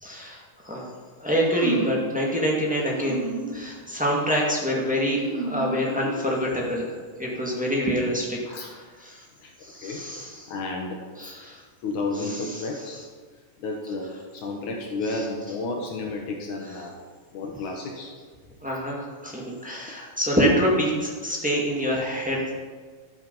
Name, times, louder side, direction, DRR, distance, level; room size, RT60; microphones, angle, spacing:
voice 1, 0.0-0.9 1.2-6.9 7.2-8.4 8.7-9.2 9.6-10.5 11.2-11.6 12.2-12.7 15.1-15.2 18.6-22.5, equal, 5° right, -4 dB, 0.8 m, -26 dB
sound 1, 1.5-2.1 2.9-3.6 4.0-4.4 5.2-6.4, right 3 dB, 50° right, 4.0 m, -32 dB
voice 2, 10.5-11.0 11.8-13.0 13.6-16.9 17.3-18.1, left 3 dB, 65° left, 0 dB, 2.5 m, -31 dB
12.5 x 8.3 x 5.4 m, 1.5 s
omnidirectional pair, 4.0 m